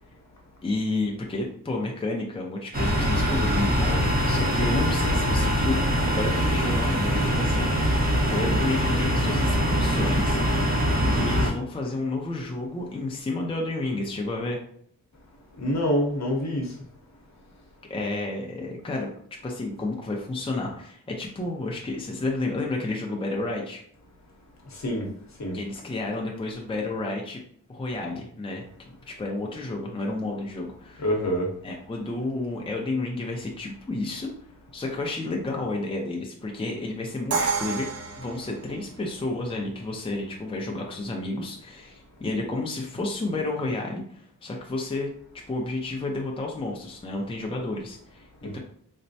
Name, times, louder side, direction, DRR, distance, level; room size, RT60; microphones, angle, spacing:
voice 1, 0.6-10.4 11.0-14.6 17.9-19.1 19.4-23.8 25.5-27.4 27.7-31.1 31.6-34.3 34.7-37.9 38.2-48.3 48.5-48.6, left 2 dB, 15° left, 0 dB, 0.5 m, -31 dB
sound 1, 2.7-11.5, equal, 25° right, 0.9 m, -23 dB
voice 2, 15.6-16.7 24.8-25.1 25.4-25.6 31.0-31.5 48.4-48.6, equal, 55° left, 0 dB, 1.0 m, -26 dB
Crash cymbal, 37.3-39.2, right 4 dB, 50° right, 0.5 m, -29 dB
4.2 x 2.1 x 2.7 m, 0.62 s
wide cardioid pair, 85°, 33 cm